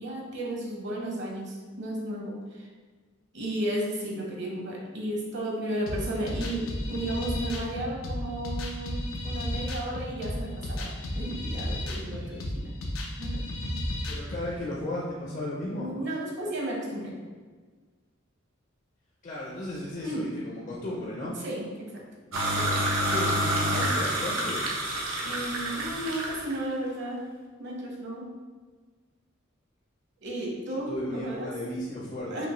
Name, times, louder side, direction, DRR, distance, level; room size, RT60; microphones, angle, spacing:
voice 1, 0.0-2.7 3.3-12.7 13.2-13.8 15.7-17.1 20.0-20.3 21.4-21.9 22.5-22.8 25.2-27.2 27.6-28.3 30.2-31.5 32.3-32.5, right 1 dB, 60° right, -2 dB, 1.0 m, -34 dB
sound 1, 5.9-14.5, left 1 dB, 85° left, 0.6 m, -33 dB
voice 2, 14.1-15.9 19.2-21.4 23.1-24.6 30.9-32.5, left 1 dB, 40° left, -5 dB, 0.6 m, -35 dB
sound 2, 22.3-26.5, right 1 dB, 85° right, 0.9 m, -28 dB
5.2 x 2.7 x 3.0 m, 1.4 s
head